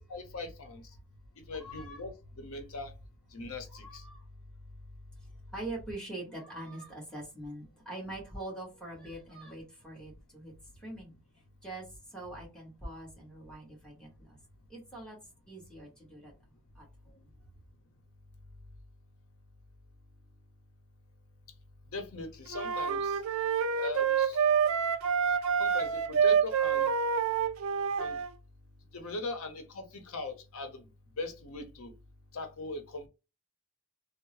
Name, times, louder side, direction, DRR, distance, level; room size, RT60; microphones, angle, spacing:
voice 1, 0.1-0.9 1.5-2.9 3.3-4.0 21.9-23.2 23.7-24.4 25.6-26.9 28.0-28.2 28.9-30.8 31.2-31.9 32.3-33.1, left 2 dB, 75° left, 0.7 m, -40 dB
voice 2, 1.5-2.0 3.7-4.2 5.2-11.1 11.6-14.4 14.7-15.2 15.5-16.3 16.7-17.3, right 2 dB, 5° left, 1.2 m, -44 dB
sound 1, 22.5-28.3, right 7 dB, 75° right, 0.4 m, -27 dB
3.5 x 2.0 x 3.1 m
head